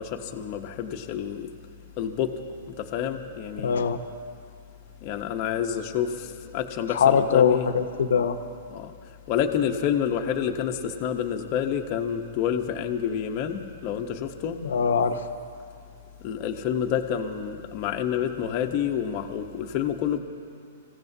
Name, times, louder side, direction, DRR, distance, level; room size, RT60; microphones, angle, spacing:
voice 1, 0.0-1.5 2.0-2.3 2.8-3.8 5.0-7.7 8.7-8.9 9.3-14.6 16.2-20.2, left 8 dB, 35° left, 3 dB, 0.9 m, -28 dB
voice 2, 3.6-4.0 6.9-8.4 14.6-15.2, left 7 dB, 85° left, 9 dB, 0.8 m, -22 dB
26.5 x 15.5 x 2.7 m, 2.4 s
hypercardioid pair, 160°, 0 cm